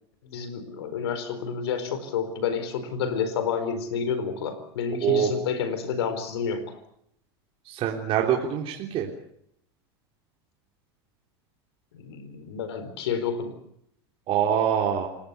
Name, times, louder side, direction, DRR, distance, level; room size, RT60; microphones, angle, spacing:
voice 1, 0.2-6.8 11.9-13.5, left 6 dB, 85° left, 12 dB, 4.4 m, -29 dB
voice 2, 7.7-9.1 14.3-15.1, right 9 dB, 45° right, -1 dB, 3.5 m, -24 dB
29.0 x 18.0 x 6.9 m, 0.72 s
supercardioid pair, 115°, 13 cm